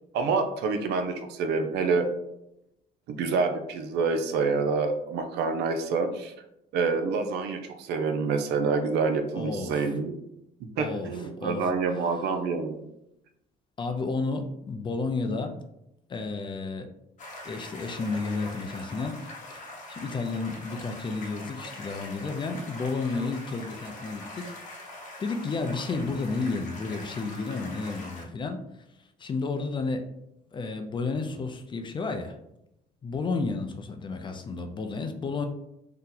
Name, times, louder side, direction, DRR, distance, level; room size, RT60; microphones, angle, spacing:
voice 1, 0.1-2.1 3.1-6.3 6.7-10.1 10.8-12.7, right 4 dB, 80° right, 6 dB, 0.5 m, -27 dB
voice 2, 9.3-9.9 10.8-11.7 13.8-15.6 16.1-16.9 17.4-19.2 19.5-24.5 25.2-28.6 29.2-30.1 30.5-32.4 33.0-35.5, left 3 dB, 30° left, 6 dB, 0.4 m, -32 dB
sound 1, 17.2-28.2, left 1 dB, 50° left, 0.9 m, -43 dB
2.8 x 2.1 x 3.8 m, 0.81 s
cardioid pair, 110°, 17 cm